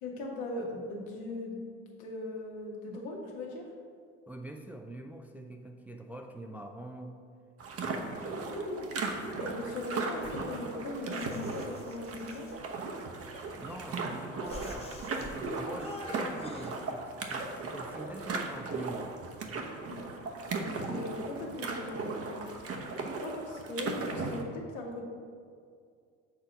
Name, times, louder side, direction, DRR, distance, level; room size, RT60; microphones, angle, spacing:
voice 1, 0.0-1.6 2.0-3.7 8.3-8.9 9.4-12.5 15.6-15.8 19.9-20.0 20.5-22.7 23.2-25.0, left 2 dB, 75° left, -1 dB, 1.6 m, -39 dB
voice 2, 4.3-7.2 7.8-8.5 13.6-14.9 15.2-19.1 19.5-19.8, right 1 dB, 5° right, 3 dB, 0.4 m, -45 dB
sound 1, 7.6-24.4, right 3 dB, 40° right, 0.9 m, -37 dB
sound 2, 9.9-10.8 11.2-12.6 13.3-14.1 14.4-15.4 15.8-16.7, left 2 dB, 15° left, 1.0 m, -47 dB
6.7 x 3.8 x 5.8 m, 2.2 s
hypercardioid pair, 75°, 38 cm